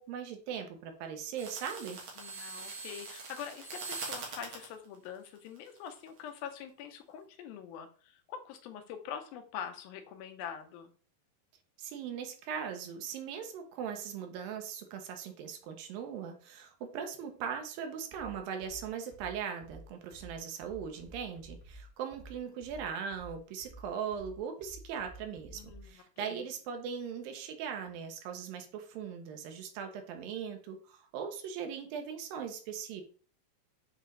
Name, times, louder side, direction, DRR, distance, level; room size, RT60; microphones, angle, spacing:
voice 1, 0.0-2.0 11.8-33.0, right 7 dB, 90° right, 5 dB, 2.7 m, -39 dB
sound 1, 1.4-4.7 5.5-6.1, right 4 dB, 55° right, 2.1 m, -42 dB
voice 2, 2.2-10.9 25.5-26.5, left 8 dB, 90° left, 7 dB, 2.6 m, -44 dB
sound 2, 18.1-25.9, right 1 dB, 65° left, 0.5 m, -52 dB
8.0 x 3.8 x 3.3 m, 0.41 s
omnidirectional pair, 4.1 m